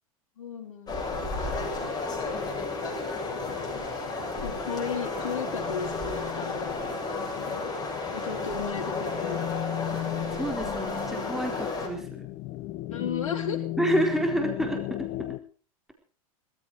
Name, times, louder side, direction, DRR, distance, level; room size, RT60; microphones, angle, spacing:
voice 1, 0.4-1.9 3.5-3.8 4.4-6.8 7.3-7.7 8.1-9.4 12.9-13.6, left 6 dB, 75° left, 0 dB, 4.6 m, -36 dB
sound 1, 0.9-11.9, left 3 dB, 20° left, 7.0 m, -32 dB
voice 2, 2.1-3.2 9.9-10.0 10.3-12.3 13.8-15.3, right 1 dB, ahead, 2 dB, 4.1 m, -30 dB
sound 2, 4.4-15.4, left 15 dB, 50° left, 1.1 m, -37 dB
20.0 x 14.5 x 4.8 m, 0.40 s
hypercardioid pair, 100°, 18 cm